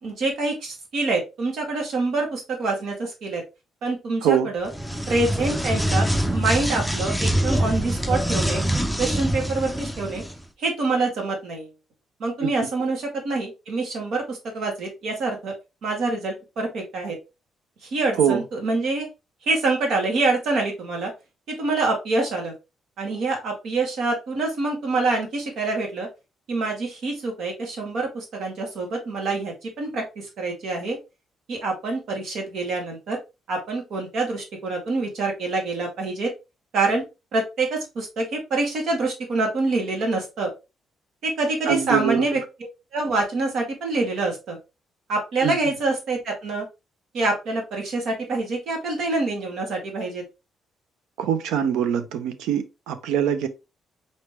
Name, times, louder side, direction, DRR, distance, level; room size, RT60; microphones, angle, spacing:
voice 1, 0.0-3.4 3.8-4.7 5.1-8.6 9.0-10.2 10.6-11.7 12.2-15.5 15.8-17.2 17.8-19.1 19.4-21.1 21.6-22.5 23.0-26.1 26.5-31.0 31.5-33.2 33.5-36.3 36.7-37.0 37.3-40.5 41.2-42.4 42.9-44.6 45.1-46.7 47.1-50.2, right 3 dB, 70° right, 1.9 m, -26 dB
sound 1, 4.7-10.4, right 1 dB, ahead, 0.6 m, -24 dB
voice 2, 41.7-42.2 45.4-45.5 51.2-53.5, right 8 dB, 90° right, 0.6 m, -23 dB
4.2 x 3.4 x 3.0 m
cardioid pair, 90°, 0 cm